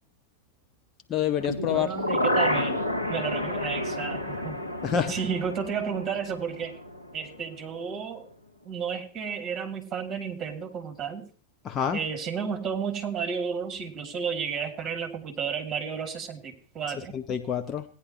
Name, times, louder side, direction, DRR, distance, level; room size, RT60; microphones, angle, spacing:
voice 1, 1.1-1.9 4.8-5.1 11.6-12.0 17.1-17.8, left 8 dB, 30° left, 7 dB, 0.9 m, -27 dB
sound 1, 1.4-7.4 7.8-7.9, left 1 dB, 85° left, 1.5 m, -30 dB
voice 2, 1.7-2.8 3.1-4.6 5.1-6.7 7.1-8.3 8.6-11.3 11.9-17.2, right 6 dB, 25° right, 4 dB, 2.5 m, -32 dB
17.0 x 10.0 x 3.0 m, 0.39 s
figure-of-eight pair, 90°, 0 cm